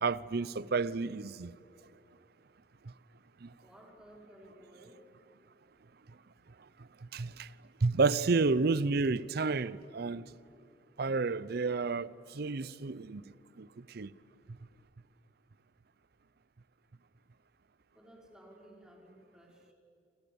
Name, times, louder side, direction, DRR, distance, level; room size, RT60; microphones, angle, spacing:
voice 1, 0.0-1.5 3.4-3.5 7.1-7.5 7.8-10.3 11.0-13.2 13.6-14.1, right 4 dB, 60° right, 0.6 m, -31 dB
voice 2, 3.6-5.0 17.9-19.7, right 1 dB, 5° right, 5.0 m, -56 dB
28.0 x 26.5 x 7.1 m
head